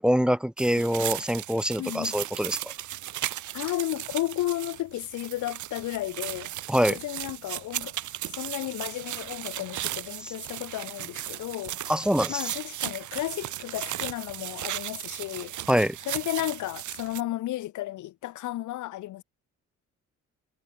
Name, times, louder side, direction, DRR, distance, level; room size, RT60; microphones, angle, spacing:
voice 1, 0.0-2.7 6.7-7.0 10.2-10.3 11.9-12.5 15.7-16.0, equal, 5° right, 0.3 m, -25 dB
sound 1, 0.6-17.2, right 13 dB, 75° right, 1.5 m, -36 dB
voice 2, 1.8-2.2 3.5-6.5 6.9-8.0 8.3-11.8 12.3-15.5 16.1-19.2, left 15 dB, 75° left, 1.0 m, -33 dB
cardioid pair, 80°, 30 cm